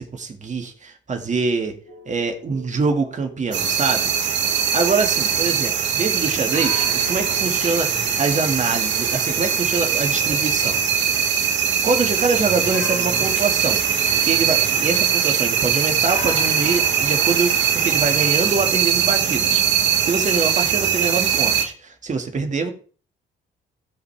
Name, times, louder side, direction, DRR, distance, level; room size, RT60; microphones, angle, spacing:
voice 1, 0.0-1.7 2.1-4.1 4.7-11.1 11.8-13.8 14.2-22.7, right 4 dB, 40° right, 4 dB, 2.1 m, -25 dB
sound 1, 1.9-5.3 6.5-11.4 12.7-15.2 16.1-19.6, left 3 dB, 70° left, 4.3 m, -40 dB
sound 2, 3.5-21.6, right 8 dB, 65° right, 2.1 m, -21 dB
16.0 x 5.4 x 3.5 m, 0.40 s
cardioid pair, 90°, 20 cm